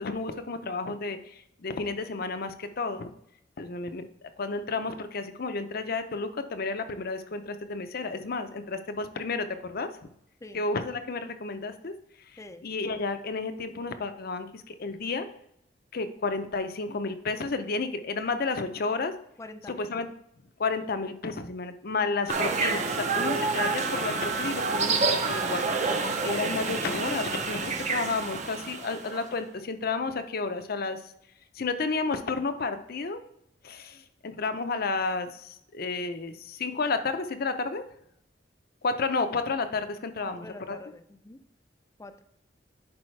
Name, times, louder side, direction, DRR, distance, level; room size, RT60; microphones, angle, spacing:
voice 1, 0.0-3.1 3.6-4.0 4.4-10.1 10.5-11.9 12.3-15.3 15.9-19.1 19.7-20.1 20.6-31.0 31.6-33.2 33.6-37.9 38.8-40.8, left 3 dB, 55° left, 9 dB, 0.6 m, -31 dB
voice 2, 19.4-19.9 40.2-41.4 42.0-42.2, left 2 dB, 15° left, 10 dB, 0.5 m, -45 dB
sound 1, 22.3-29.2, right 4 dB, 40° right, 0.7 m, -28 dB
10.5 x 4.4 x 3.2 m, 0.74 s
head